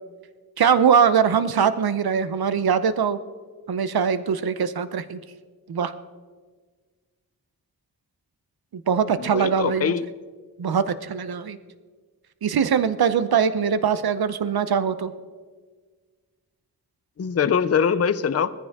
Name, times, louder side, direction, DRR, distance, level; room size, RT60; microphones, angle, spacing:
voice 1, 0.6-3.2 3.7-5.2 5.7-5.9 8.7-9.9 10.6-11.6 12.4-15.1, right 7 dB, 80° right, 12 dB, 0.8 m, -22 dB
voice 2, 9.1-10.1 17.2-18.5, left 7 dB, 45° left, 13 dB, 0.6 m, -23 dB
20.0 x 14.5 x 3.6 m, 1.5 s
wide cardioid pair, 120°, 36 cm